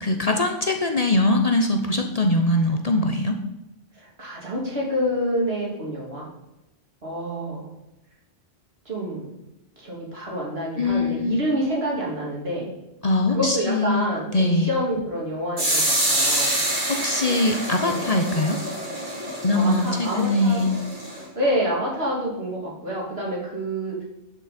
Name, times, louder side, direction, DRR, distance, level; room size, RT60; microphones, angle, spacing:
voice 1, 0.0-3.4 10.8-11.4 13.0-14.7 16.9-18.6 19.4-20.7, left 2 dB, 40° left, 5 dB, 0.9 m, -22 dB
voice 2, 3.9-6.3 7.0-7.7 8.8-9.3 9.8-12.7 13.3-16.6 17.8-18.1 19.2-20.7 21.1-24.0, equal, 65° right, -4 dB, 3.3 m, -28 dB
sound 1, 15.6-21.2, right 1 dB, 45° right, 3.1 m, -26 dB
11.5 x 6.2 x 4.3 m, 0.93 s
omnidirectional pair, 1.1 m